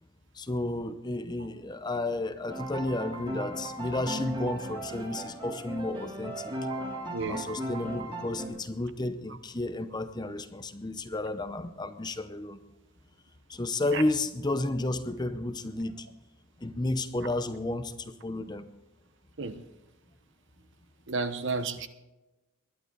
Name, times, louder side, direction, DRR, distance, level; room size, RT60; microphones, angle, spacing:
voice 1, 0.3-6.7 7.3-12.6 13.5-16.1 16.6-18.7, left 2 dB, 20° left, 11 dB, 0.7 m, -32 dB
sound 1, 2.5-8.5, right 1 dB, 20° right, 2.9 m, -37 dB
voice 2, 7.1-7.4 13.9-14.0 19.4-19.5 21.1-21.9, right 4 dB, 55° right, 10 dB, 1.1 m, -31 dB
20.0 x 11.5 x 3.9 m, 1.0 s
head